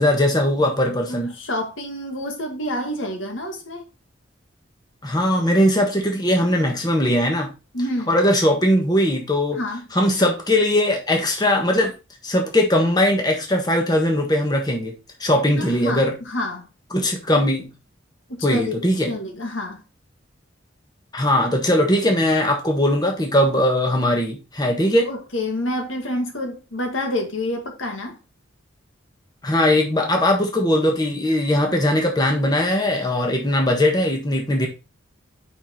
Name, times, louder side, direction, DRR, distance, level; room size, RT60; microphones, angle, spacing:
voice 1, 0.0-1.3 5.0-7.5 8.1-9.6 9.9-11.9 12.2-14.9 15.2-16.1 16.9-17.7 18.4-19.1 21.1-25.1 29.4-34.7, left 1 dB, 20° left, 1.4 m, -20 dB
voice 2, 1.1-3.9 7.7-8.2 9.5-9.9 15.5-16.7 18.3-19.8 25.0-28.2, left 1 dB, 75° left, 1.8 m, -28 dB
5.8 x 5.5 x 4.4 m
head